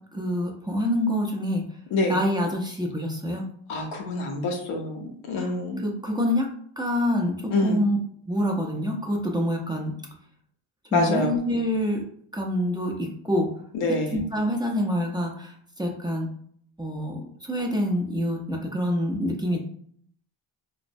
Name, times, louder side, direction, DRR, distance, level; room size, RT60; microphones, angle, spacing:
voice 1, 0.1-1.6 2.1-3.4 5.4-5.5 5.8-6.5 6.8-8.0 8.3-9.9 10.9-12.0 12.3-13.5 14.1-16.3 16.8-19.6, equal, 10° right, 0 dB, 0.6 m, -26 dB
voice 2, 3.7-5.8 7.5-7.8 10.9-11.3 13.7-14.2, left 2 dB, 90° left, 2 dB, 0.7 m, -26 dB
3.0 x 2.1 x 2.6 m, 0.63 s
supercardioid pair, 60°, 48 cm